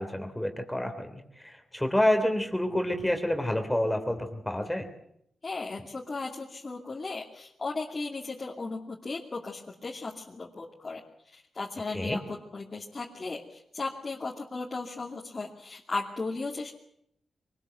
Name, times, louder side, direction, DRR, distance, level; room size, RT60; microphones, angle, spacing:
voice 1, 0.0-4.8 11.9-12.2, left 1 dB, 10° left, 5 dB, 3.2 m, -28 dB
voice 2, 5.4-12.2 12.5-16.7, left 3 dB, 35° left, -1 dB, 2.6 m, -36 dB
24.0 x 19.5 x 8.0 m, 0.73 s
cardioid pair, 75°, 0 cm